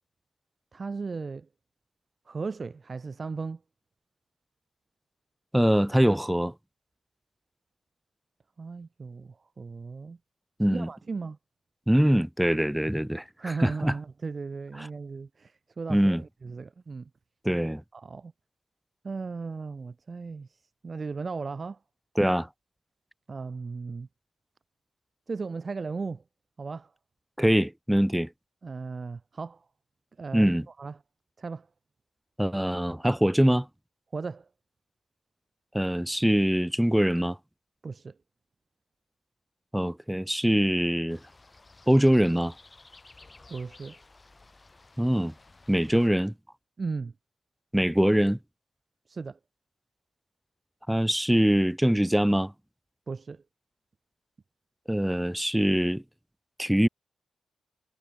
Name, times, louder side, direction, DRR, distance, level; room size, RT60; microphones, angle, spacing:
voice 1, 0.7-1.5 2.3-3.6 8.6-10.2 10.7-11.4 13.4-17.1 17.9-18.3 19.0-21.8 23.3-24.1 25.3-26.2 26.6-26.9 28.6-29.6 30.2-31.0 31.4-31.7 34.1-34.5 37.8-38.2 43.5-44.0 46.8-47.1 49.1-49.4 53.1-53.4, right 4 dB, 45° right, 2.2 m, -36 dB
voice 2, 5.5-6.5 10.6-10.9 11.9-13.9 14.8-14.9 15.9-16.2 17.4-17.8 22.2-22.5 27.4-28.3 30.3-30.7 32.4-33.7 35.7-37.4 39.7-41.2 41.9-42.5 45.0-45.3 45.7-46.3 47.7-48.4 50.9-52.5 54.9-56.0 56.6-56.9, equal, 5° right, 0.8 m, -23 dB
sound 1, 41.1-46.1, left 3 dB, 30° left, 6.1 m, -54 dB
supercardioid pair, 55°, 0 cm